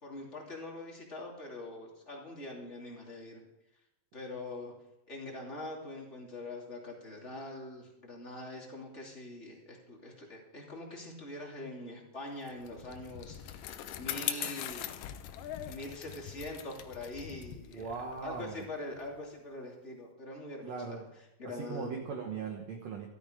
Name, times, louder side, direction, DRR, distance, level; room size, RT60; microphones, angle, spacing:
voice 1, 0.0-3.4 4.1-4.7 5.1-14.9 15.6-21.9, left 2 dB, 20° left, -2 dB, 2.3 m, -43 dB
Bicycle, 12.5-19.2, left 11 dB, 85° left, 1.9 m, -41 dB
voice 2, 17.7-18.6 20.6-21.0 21.7-23.1, right 5 dB, 65° right, 2 dB, 1.7 m, -39 dB
14.5 x 13.0 x 5.1 m, 0.88 s
omnidirectional pair, 4.9 m